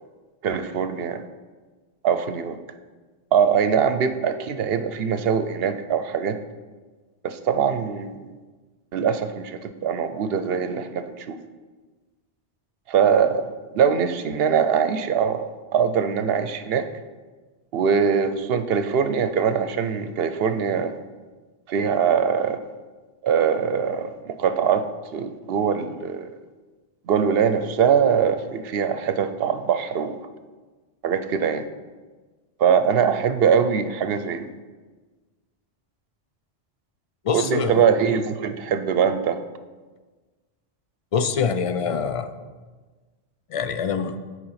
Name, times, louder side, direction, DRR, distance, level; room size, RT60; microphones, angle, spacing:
voice 1, 0.4-1.2 2.0-2.6 3.3-6.4 7.2-8.2 8.9-11.4 12.9-13.5 13.7-16.9 17.7-20.9 21.7-22.6 23.2-24.8 25.1-26.3 27.1-30.2 31.0-31.6 32.6-34.5 37.3-39.4, right 7 dB, 70° right, 10 dB, 0.8 m, -22 dB
voice 2, 37.2-37.8 41.1-42.3 43.5-44.2, left 6 dB, 50° left, 10 dB, 0.4 m, -24 dB
9.5 x 4.7 x 5.7 m, 1.3 s
omnidirectional pair, 1.1 m